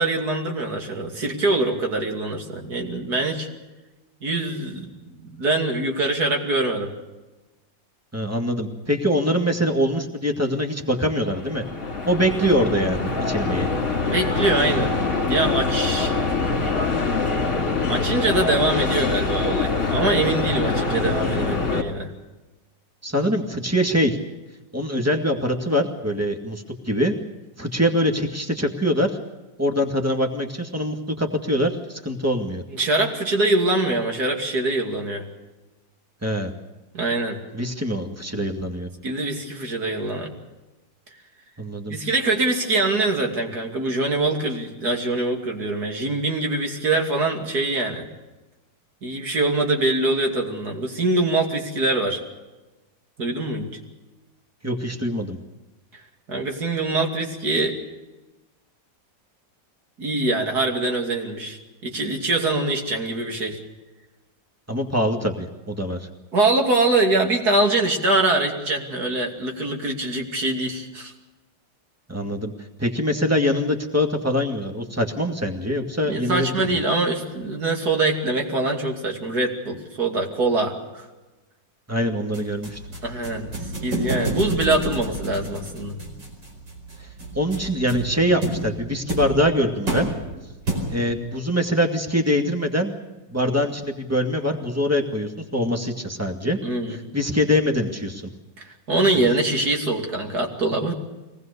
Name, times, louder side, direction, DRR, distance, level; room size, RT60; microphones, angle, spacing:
voice 1, 0.0-3.5 4.2-4.9 5.2-6.9 14.0-14.9 15.2-16.2 17.9-22.1 32.7-35.3 36.9-37.4 39.0-40.3 41.9-48.1 49.0-52.2 53.2-53.7 56.3-57.8 60.0-63.6 66.3-71.1 76.0-81.1 83.0-83.6 83.8-86.0 96.6-97.0 98.6-100.9, right 2 dB, 55° right, 3 dB, 3.2 m, -23 dB
voice 2, 8.1-11.6 12.1-13.7 23.0-24.2 24.7-27.2 27.6-29.2 29.6-32.6 36.2-36.5 37.5-38.9 41.6-42.0 54.6-55.4 64.7-66.1 72.1-72.5 72.8-76.8 81.9-82.8 87.0-87.1 87.3-90.1 90.9-92.9 93.3-96.6 97.1-98.3, equal, 10° right, 4 dB, 2.0 m, -23 dB
sound 1, 10.9-21.8, left 4 dB, 40° left, 2.6 m, -24 dB
sound 2, 82.3-91.2, right 1 dB, 80° right, 5.5 m, -30 dB
24.0 x 19.0 x 6.8 m, 1.1 s
omnidirectional pair, 2.0 m